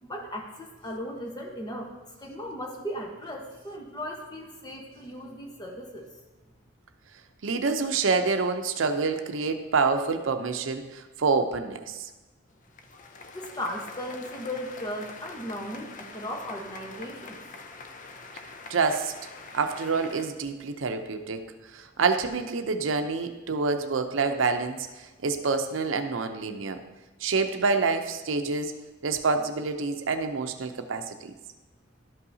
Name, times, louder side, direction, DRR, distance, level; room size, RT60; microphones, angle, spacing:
voice 1, 0.0-6.1 13.3-17.4, equal, 20° left, 1 dB, 1.0 m, -37 dB
voice 2, 7.4-12.1 18.7-19.1 19.5-21.4 21.7-26.8 27.2-28.7 29.0-31.3, right 4 dB, 90° right, 7 dB, 0.6 m, -27 dB
sound 1, 12.5-20.3, left 3 dB, 40° left, 0.5 m, -45 dB
12.0 x 5.5 x 2.7 m, 1.2 s
head